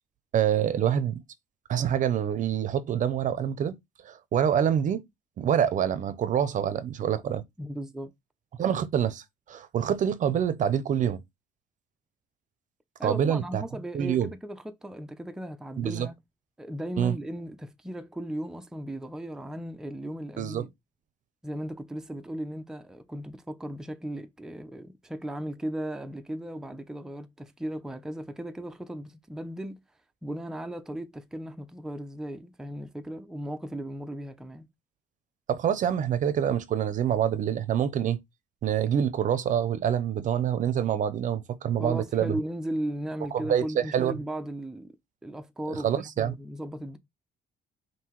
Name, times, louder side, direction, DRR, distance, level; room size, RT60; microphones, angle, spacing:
voice 1, 0.3-1.2 1.7-3.8 4.0-5.0 5.4-7.4 8.6-11.2 13.0-13.6 13.9-14.3 15.8-16.1 17.0-17.2 20.4-20.6 35.5-38.2 38.6-42.4 43.3-44.2 45.8-46.3, right 9 dB, 50° right, 0.6 m, -26 dB
voice 2, 7.6-8.1 13.0-16.2 16.6-20.7 21.4-29.8 30.2-34.7 41.8-44.9 45.2-47.0, right 1 dB, 5° right, 0.5 m, -36 dB
5.5 x 2.7 x 3.0 m
cardioid pair, 110°, 17 cm